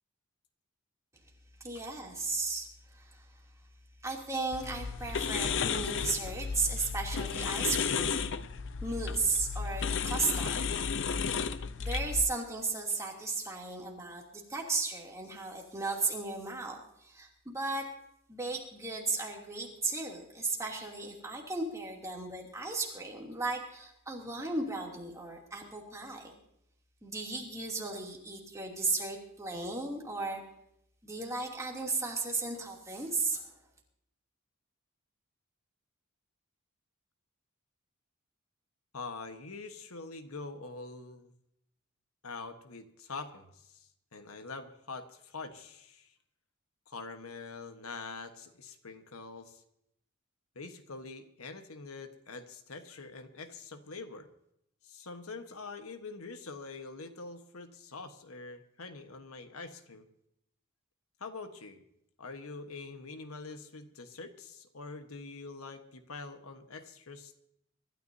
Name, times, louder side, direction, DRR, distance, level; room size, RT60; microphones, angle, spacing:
voice 1, 1.6-3.2 4.0-8.3 8.8-10.7 11.8-17.9 18.3-26.3 27.0-30.4 31.0-33.5, right 3 dB, 15° right, -1 dB, 2.8 m, -35 dB
sound 1, 4.5-12.2, left 6 dB, 60° left, 0.7 m, -33 dB
voice 2, 38.9-41.3 42.2-46.1 46.9-49.6 50.5-54.3 54.8-60.1 61.2-61.8 62.2-67.4, left 3 dB, 80° left, 8 dB, 1.3 m, -45 dB
24.5 x 13.0 x 2.7 m, 0.78 s
head